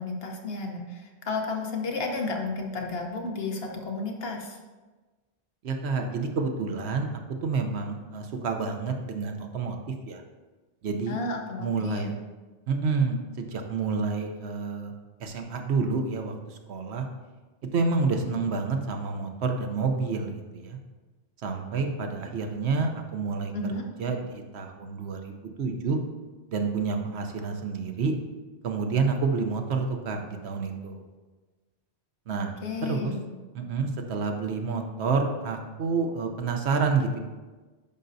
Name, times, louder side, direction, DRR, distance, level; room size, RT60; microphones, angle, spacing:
voice 1, 0.0-4.6 11.1-12.1 23.5-23.8 32.3-33.2, left 3 dB, 65° left, 2 dB, 1.1 m, -32 dB
voice 2, 5.6-7.1 7.4-9.8 10.1-10.2 10.8-11.2 11.6-12.1 12.7-14.9 15.2-17.1 17.7-20.8 21.4-24.2 24.5-26.0 26.5-28.1 28.6-31.0 32.3-32.5 32.8-33.1 33.5-37.2, right 4 dB, 75° right, 4 dB, 1.0 m, -29 dB
10.5 x 5.3 x 2.6 m, 1.3 s
omnidirectional pair, 1.1 m